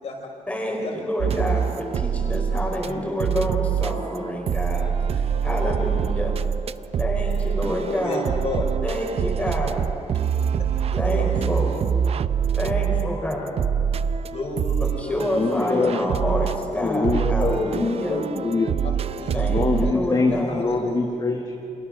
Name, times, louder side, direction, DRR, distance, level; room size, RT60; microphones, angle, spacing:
voice 1, 0.5-4.9 5.4-6.3 7.0-8.2 8.8-9.8 11.0-11.7 12.5-13.6 15.0-18.3 19.3-20.7, equal, 10° left, -1 dB, 5.1 m, -28 dB
voice 2, 1.2-1.7 2.8-3.1 8.0-8.7 10.9-11.3 14.3-17.0 18.8-19.4 19.8-21.0, left 3 dB, 55° left, 0 dB, 5.5 m, -33 dB
sound 1, 1.2-2.9 3.2-19.9, right 7 dB, 50° right, 0.5 m, -25 dB
voice 3, 15.3-16.0 16.8-18.7 19.5-21.6, left 3 dB, 30° left, 2 dB, 1.5 m, -24 dB
29.0 x 27.0 x 6.6 m, 2.7 s
wide cardioid pair, 180°, 13 cm